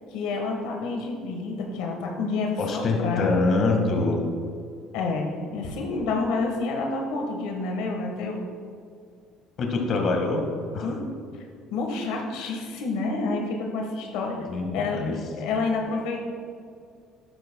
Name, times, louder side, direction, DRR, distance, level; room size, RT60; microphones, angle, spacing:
voice 1, 0.1-3.3 4.9-8.4 10.8-11.0 11.7-14.3 14.7-16.3, left 3 dB, 90° left, 1 dB, 1.4 m, -29 dB
voice 2, 2.6-4.2 9.6-10.9 14.5-15.2, left 3 dB, 50° left, 2 dB, 1.6 m, -25 dB
12.5 x 10.5 x 2.2 m, 2.3 s
cardioid pair, 125°, 0 cm